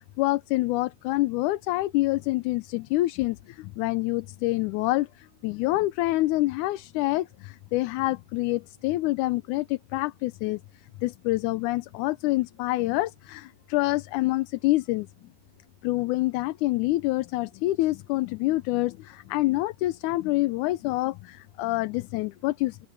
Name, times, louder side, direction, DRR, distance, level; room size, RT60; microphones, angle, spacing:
voice 1, 0.2-10.6 11.0-15.1 15.8-22.8, left 18 dB, 85° left, 2.1 m, -26 dB
omnidirectional pair, 3.5 m